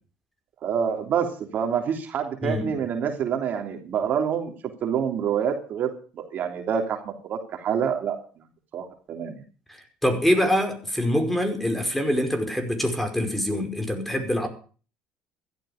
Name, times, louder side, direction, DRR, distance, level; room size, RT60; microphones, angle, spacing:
voice 1, 0.6-4.5 4.8-8.2 8.7-9.4, right 7 dB, 55° right, 4 dB, 3.2 m, -27 dB
voice 2, 10.0-14.5, equal, 5° left, 6 dB, 5.1 m, -24 dB
15.5 x 13.0 x 5.2 m, 0.39 s
supercardioid pair, 80°, 4 cm